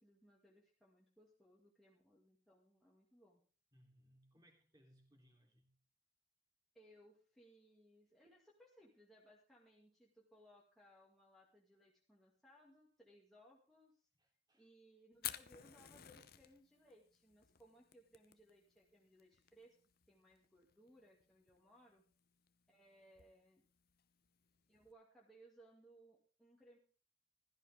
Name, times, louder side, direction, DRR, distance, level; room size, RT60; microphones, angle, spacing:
voice 1, 0.0-3.4 6.7-13.9 14.5-19.8 20.1-22.0 22.7-23.6 24.7-26.8, equal, ahead, 2.3 m, -66 dB
voice 2, 3.7-5.8 14.2-14.7, equal, 20° right, 3.3 m, -70 dB
Fire, 15.1-24.9, left 12 dB, 50° left, 0.8 m, -54 dB
15.5 x 12.5 x 3.6 m
head